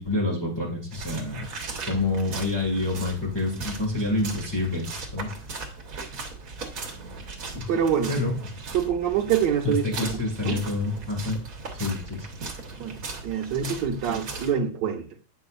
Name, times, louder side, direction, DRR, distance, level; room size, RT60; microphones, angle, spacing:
voice 1, 0.0-1.4 1.8-4.9 5.1-5.3 7.5-7.7 8.1-8.4 9.6-11.4 11.8-12.3, left 2 dB, 15° left, 1.9 m, -27 dB
sound 1, 0.9-14.5, right 3 dB, 50° right, 1.7 m, -38 dB
voice 2, 7.7-8.1 8.7-10.2 10.4-10.6 12.8-15.1, right 8 dB, 65° right, 1.5 m, -26 dB
8.8 x 5.4 x 2.4 m
omnidirectional pair, 2.2 m